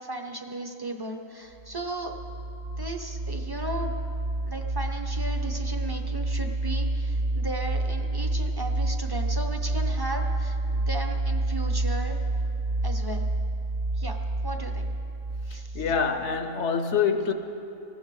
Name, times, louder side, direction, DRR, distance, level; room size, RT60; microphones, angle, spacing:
voice 1, 0.0-2.1 2.8-4.0 4.5-12.2 12.8-13.3 14.0-14.9 15.5-15.8, right 2 dB, 20° right, 4 dB, 0.8 m, -36 dB
sound 1, 1.6-16.1, right 2 dB, 50° right, 0.9 m, -29 dB
voice 2, 15.7-17.3, left 6 dB, 65° left, 9 dB, 1.1 m, -25 dB
19.5 x 15.0 x 4.8 m, 2.8 s
omnidirectional pair, 1.3 m